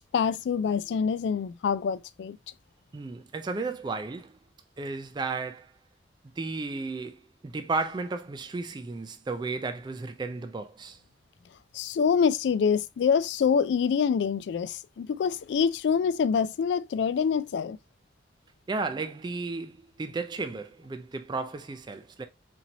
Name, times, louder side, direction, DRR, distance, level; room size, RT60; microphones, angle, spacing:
voice 1, 0.1-2.4 11.7-17.8, left 6 dB, 70° left, 0.3 m, -26 dB
voice 2, 2.9-4.4 4.8-5.7 6.4-11.0 18.7-22.3, right 3 dB, 25° right, 0.3 m, -34 dB
4.4 x 2.7 x 2.7 m
head